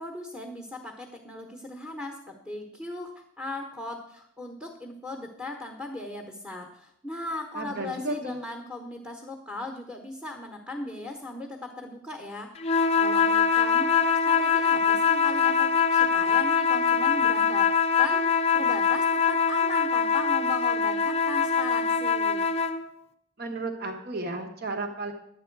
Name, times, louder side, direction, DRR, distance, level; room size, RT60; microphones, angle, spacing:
voice 1, 0.0-17.7 18.0-22.5, left 1 dB, 5° right, 1 dB, 1.0 m, -38 dB
voice 2, 7.5-8.4 23.4-25.1, right 2 dB, 50° right, 4 dB, 1.2 m, -33 dB
sound 1, 12.6-22.8, left 6 dB, 30° left, 0.6 m, -23 dB
11.0 x 8.4 x 4.6 m, 0.74 s
head